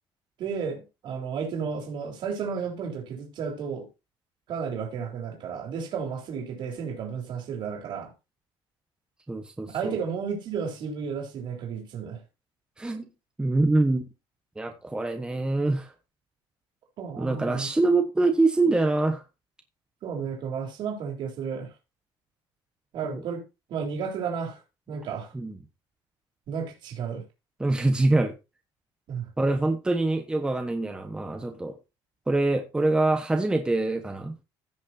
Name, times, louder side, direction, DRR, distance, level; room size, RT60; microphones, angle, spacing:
voice 1, 0.4-3.9 4.5-8.1 9.7-12.2 17.0-17.7 20.0-21.7 22.9-23.4 23.7-24.6 24.9-25.3 26.5-27.2 29.1-29.3, right 6 dB, 55° right, 3.8 m, -32 dB
voice 2, 9.3-10.0 12.8-13.1 13.4-14.0 14.5-15.9 17.2-19.2 23.0-23.2 25.3-25.6 27.6-28.4 29.4-31.8 32.3-34.3, right 2 dB, 10° right, 1.3 m, -25 dB
16.5 x 6.2 x 2.8 m
cardioid pair, 150°, 9 cm